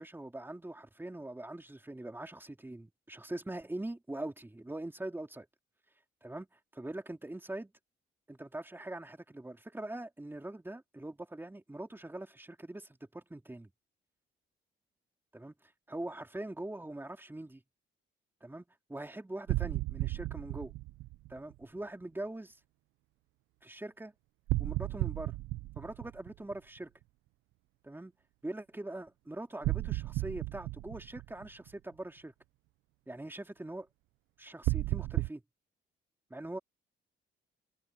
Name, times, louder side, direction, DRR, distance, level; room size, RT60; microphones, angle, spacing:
voice 1, 0.0-5.5 6.2-6.5 6.7-7.7 8.3-13.7 15.3-15.5 15.9-17.6 18.4-20.7 21.3-22.6 23.6-24.1 24.6-25.4 25.8-26.9 27.8-28.1 28.4-32.3 33.1-33.9 34.4-35.4 36.3-36.6, right 1 dB, 10° right, 3.2 m, -42 dB
sound 1, 19.5-21.5 24.5-26.8 29.6-31.7 34.6-35.3, right 19 dB, 90° right, 0.5 m, -34 dB
cardioid pair, 90°, 20 cm